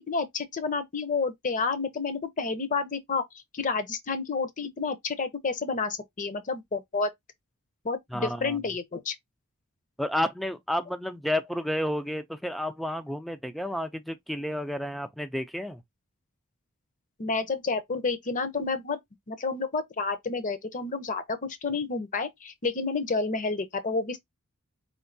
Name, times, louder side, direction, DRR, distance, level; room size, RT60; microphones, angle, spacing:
voice 1, 0.1-3.2 3.5-7.1 7.8-9.2 17.2-19.0 19.3-24.2, left 4 dB, 35° left, 0.6 m, -30 dB
voice 2, 8.1-8.6 10.0-15.8, left 1 dB, ahead, 0.3 m, -31 dB
4.4 x 2.3 x 2.6 m
head